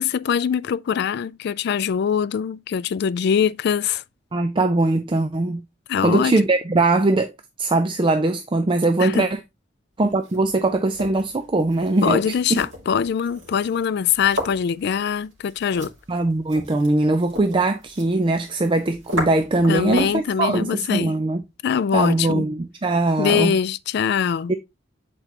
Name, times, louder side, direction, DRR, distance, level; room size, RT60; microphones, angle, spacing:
voice 1, 0.0-4.0 5.9-6.4 9.0-9.3 12.0-15.9 19.7-21.2 21.6-22.5 23.2-24.5, left 7 dB, 55° left, 0.3 m, -23 dB
voice 2, 4.3-5.6 6.0-7.3 7.6-9.4 10.0-12.6 16.1-21.4 21.9-23.5 24.5-24.6, right 2 dB, 25° right, 0.4 m, -21 dB
sound 1, 10.1-20.3, left 1 dB, 75° right, 2.4 m, -36 dB
7.9 x 4.5 x 2.9 m
head